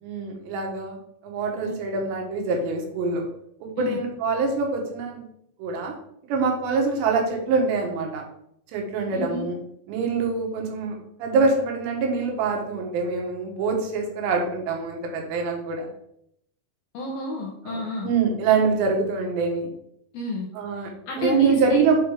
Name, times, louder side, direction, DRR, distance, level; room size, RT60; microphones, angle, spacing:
voice 1, 0.0-3.3 3.6-5.3 5.6-5.9 6.3-8.2 8.7-9.6 9.9-15.9 17.7-19.7 20.6-20.9 21.2-22.0, right 4 dB, 70° right, 1 dB, 3.5 m, -25 dB
voice 2, 9.1-9.4 16.9-18.1 20.1-20.5 20.8-21.8, left 3 dB, 75° left, -1 dB, 2.3 m, -31 dB
8.0 x 4.3 x 5.0 m, 0.74 s
omnidirectional pair, 5.4 m